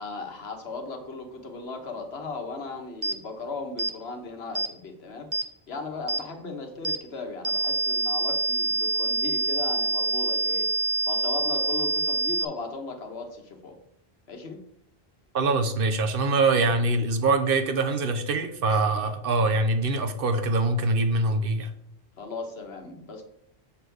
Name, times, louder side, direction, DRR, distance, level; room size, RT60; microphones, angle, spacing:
voice 1, 0.0-5.3 5.7-10.7 11.1-13.7 14.3-14.6 22.2-23.2, left 3 dB, 80° left, 4 dB, 1.3 m, -37 dB
sound 1, 3.0-3.2 3.8-3.9 4.5-4.7 5.3-5.5 6.1-6.2 6.8-7.0 7.4-12.4, right 3 dB, 30° right, 0.7 m, -26 dB
voice 2, 15.3-21.7, right 3 dB, 65° right, 6 dB, 1.0 m, -24 dB
7.0 x 3.4 x 6.2 m, 0.72 s
omnidirectional pair, 1.0 m